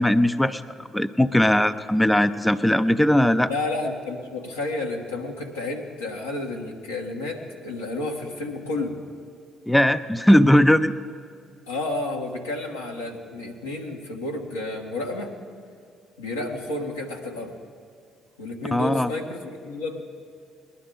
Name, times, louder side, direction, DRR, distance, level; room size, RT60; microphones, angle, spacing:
voice 1, 0.0-3.5 9.7-10.9 18.7-19.1, left 1 dB, 5° left, 11 dB, 0.5 m, -19 dB
voice 2, 3.5-8.9 11.7-15.3 16.2-17.5 18.4-20.0, left 2 dB, 90° left, -1 dB, 1.4 m, -31 dB
21.0 x 11.5 x 3.8 m, 2.3 s
hypercardioid pair, 50°, 0 cm